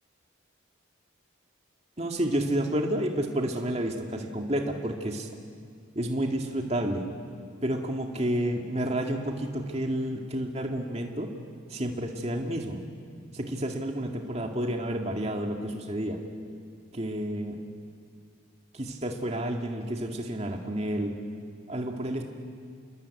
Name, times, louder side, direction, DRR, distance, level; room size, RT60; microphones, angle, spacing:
voice 1, 2.0-5.3 5.9-7.1 7.6-11.3 11.7-12.8 13.3-16.2 16.9-17.6 18.7-21.2 21.7-22.2, right 1 dB, 30° right, 2 dB, 2.2 m, -30 dB
28.0 x 22.0 x 8.5 m, 2.2 s
head